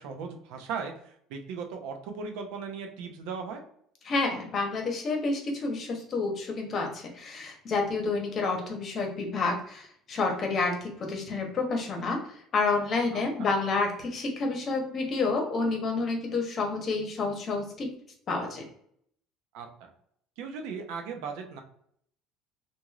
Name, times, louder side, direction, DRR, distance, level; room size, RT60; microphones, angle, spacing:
voice 1, 0.0-3.6 13.1-13.5 19.5-19.9 20.4-21.6, right 5 dB, 80° right, 4 dB, 0.6 m, -38 dB
voice 2, 4.0-12.2 12.5-17.9 18.3-18.6, left 3 dB, 40° left, 2 dB, 0.9 m, -29 dB
3.0 x 2.6 x 2.3 m, 0.67 s
supercardioid pair, 110°, 0 cm